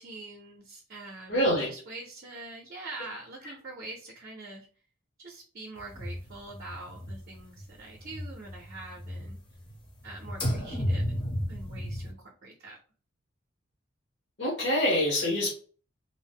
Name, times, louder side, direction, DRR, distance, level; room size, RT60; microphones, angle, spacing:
voice 1, 0.0-4.7 5.2-9.4 10.0-12.8, right 2 dB, 50° right, -1 dB, 0.5 m, -44 dB
voice 2, 1.3-1.7 3.4-3.5 14.4-15.5, equal, 60° left, -4 dB, 0.8 m, -25 dB
sound 1, 5.8-7.7 7.9-9.8 10.0-12.1, equal, 25° left, 0.6 m, -33 dB
2.7 x 2.0 x 3.4 m, 0.41 s
head